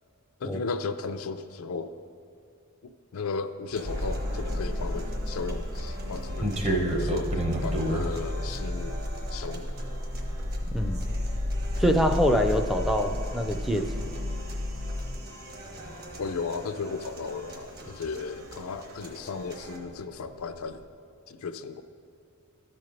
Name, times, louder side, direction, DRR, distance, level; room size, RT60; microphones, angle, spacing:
voice 1, 0.4-1.9 2.8-7.3 7.6-9.0 9.3-9.7 16.2-20.9 21.3-21.8, left 4 dB, 80° left, 10 dB, 0.4 m, -35 dB
sound 1, 3.8-19.8, right 1 dB, 50° right, 1.2 m, -45 dB
sound 2, 3.8-15.1, left 1 dB, 70° right, 2.0 m, -32 dB
sound 3, 5.0-19.2 19.5-20.8, right 1 dB, 30° right, 0.7 m, -35 dB
voice 2, 11.8-14.0, equal, ahead, 3 dB, 0.4 m, -25 dB
12.5 x 4.2 x 5.1 m, 2.6 s
head